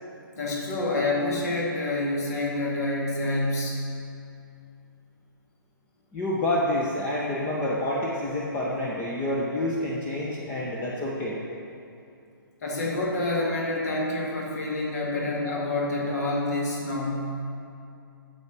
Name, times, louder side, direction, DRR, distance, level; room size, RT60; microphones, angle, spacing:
voice 1, 0.4-3.8 12.6-17.4, left 2 dB, 45° left, -3 dB, 2.3 m, -27 dB
voice 2, 6.1-11.4, left 1 dB, 15° left, -5 dB, 1.0 m, -28 dB
9.4 x 7.0 x 6.2 m, 2.5 s
figure-of-eight pair, 130°, 12 cm